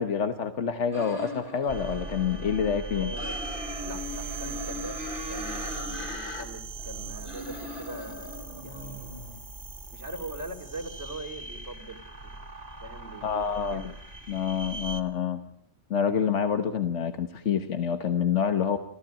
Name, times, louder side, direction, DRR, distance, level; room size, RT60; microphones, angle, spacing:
voice 1, 0.0-3.1 13.2-13.9 14.3-15.4 15.9-18.8, left 7 dB, 90° left, 8 dB, 1.5 m, -27 dB
sound 1, 0.9-2.8 3.1-6.4 6.8-9.3, left 1 dB, 45° left, 3.8 m, -39 dB
sound 2, 1.7-15.0, right 3 dB, 35° right, 1.9 m, -40 dB
voice 2, 2.9-3.4 3.8-9.1 9.9-12.4 12.8-13.9, right 1 dB, 75° right, 3 dB, 3.4 m, -42 dB
27.5 x 15.0 x 9.0 m, 0.69 s
omnidirectional pair, 1.2 m